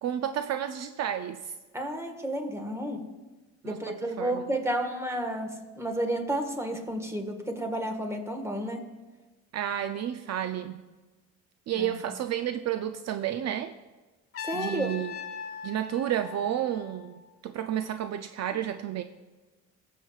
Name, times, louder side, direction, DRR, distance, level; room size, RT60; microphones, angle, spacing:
voice 1, 0.0-1.5 3.6-4.5 9.5-10.9 11.7-13.7 14.5-15.1 15.6-19.0, right 10 dB, 60° right, 9 dB, 0.5 m, -31 dB
voice 2, 1.7-3.1 3.6-8.9 11.8-11.9 14.4-14.9, right 1 dB, 10° right, 5 dB, 1.5 m, -31 dB
Trumpet, 14.3-17.3, left 6 dB, 50° left, 1.3 m, -40 dB
18.0 x 7.4 x 2.4 m, 1.2 s
cardioid pair, 90°, 30 cm